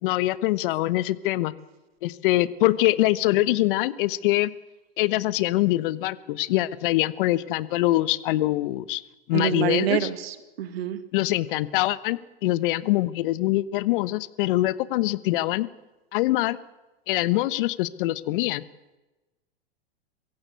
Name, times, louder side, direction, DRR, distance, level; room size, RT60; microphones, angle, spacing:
voice 1, 0.0-1.5 2.0-4.5 5.0-9.0 9.3-10.1 11.1-15.7 16.1-16.6 17.1-18.6, left 17 dB, 55° left, 16 dB, 1.2 m, -24 dB
voice 2, 9.3-11.0, right 10 dB, 70° right, 11 dB, 2.1 m, -27 dB
23.5 x 16.0 x 8.3 m, 1.1 s
hypercardioid pair, 105°, 32 cm